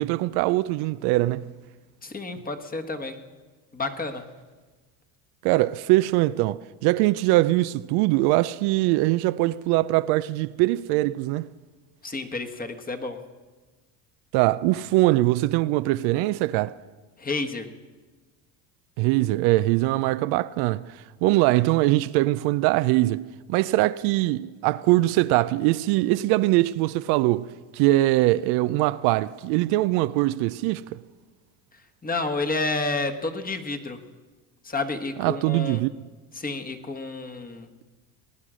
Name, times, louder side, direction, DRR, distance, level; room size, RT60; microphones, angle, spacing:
voice 1, 0.0-1.5 5.4-11.4 14.3-16.7 19.0-20.9 21.2-27.5 27.7-30.8 35.2-35.9, right 18 dB, 70° right, 0.5 m, -22 dB
voice 2, 2.0-3.1 3.7-4.2 12.0-13.2 17.2-17.7 32.0-34.0 34.6-35.8 36.3-37.7, left 3 dB, 20° left, 1.4 m, -30 dB
19.5 x 9.7 x 6.3 m
supercardioid pair, 90°, 40 cm